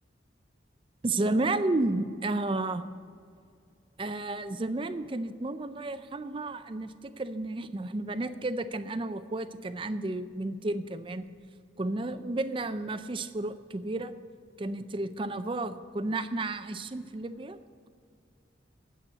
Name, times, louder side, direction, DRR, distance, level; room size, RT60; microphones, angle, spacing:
voice 1, 1.0-2.9 4.0-11.3 11.8-14.1 14.6-17.6, right 2 dB, 25° right, 11 dB, 0.5 m, -32 dB
9.8 x 7.8 x 8.6 m, 2.2 s
head